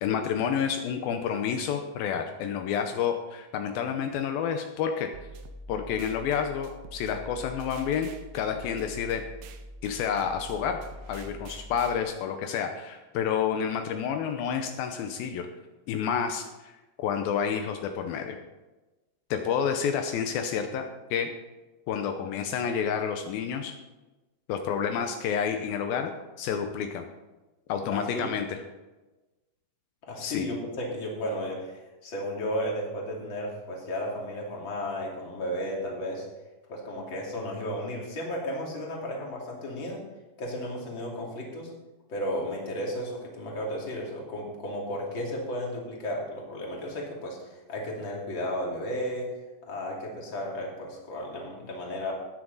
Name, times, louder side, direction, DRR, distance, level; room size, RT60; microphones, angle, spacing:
voice 1, 0.0-5.1 5.7-9.2 9.8-10.8 11.1-15.5 15.9-16.7 17.0-18.4 19.3-20.8 21.1-21.3 21.9-23.7 24.5-26.1 26.4-27.1 27.7-28.6 30.2-30.5, left 7 dB, 90° left, 5 dB, 2.0 m, -29 dB
sound 1, 5.1-12.0, right 1 dB, 75° right, 2.8 m, -44 dB
voice 2, 27.9-28.3 30.0-36.3 36.7-40.0 40.4-41.7 42.1-49.3 49.7-52.1, equal, 30° left, -2 dB, 2.6 m, -34 dB
14.5 x 9.7 x 4.0 m, 1.1 s
omnidirectional pair, 5.3 m